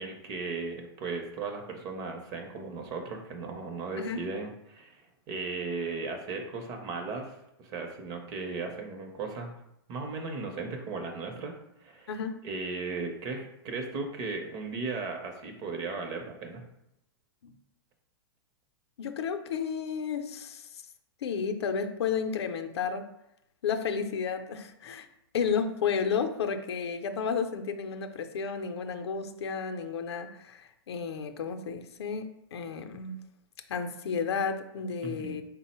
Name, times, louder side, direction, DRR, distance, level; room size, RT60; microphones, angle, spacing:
voice 1, 0.0-9.5 9.9-11.5 11.8-12.1 12.4-16.6 35.0-35.4, right 4 dB, 30° right, 4 dB, 0.6 m, -36 dB
voice 2, 12.1-12.4 17.4-17.6 19.0-20.8 21.2-23.1 23.6-25.1 25.3-33.2 33.7-35.4, left 6 dB, 85° left, 7 dB, 0.5 m, -32 dB
3.7 x 2.0 x 4.2 m, 0.81 s
hypercardioid pair, 145°, 13 cm